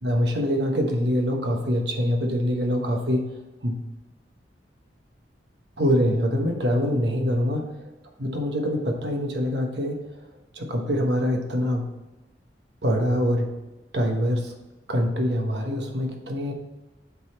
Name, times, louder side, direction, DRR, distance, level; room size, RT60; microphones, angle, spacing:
voice 1, 0.0-3.3 3.6-3.8 5.8-7.9 8.2-10.2 10.5-11.9 12.8-13.5 13.9-14.5 14.9-16.5, equal, 70° right, 2 dB, 1.3 m, -24 dB
8.1 x 4.1 x 4.2 m, 1.1 s
head